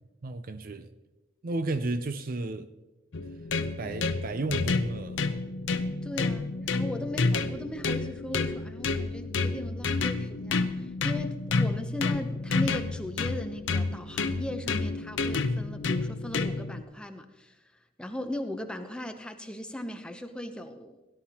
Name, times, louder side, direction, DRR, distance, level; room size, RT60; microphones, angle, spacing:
voice 1, 0.2-0.9 1.4-2.7 3.8-5.3, right 2 dB, 45° right, 0.5 m, -33 dB
sound 1, 3.1-16.8, left 3 dB, 65° left, 0.6 m, -30 dB
voice 2, 6.0-21.0, left 1 dB, 5° left, 0.7 m, -38 dB
17.0 x 11.0 x 2.9 m
head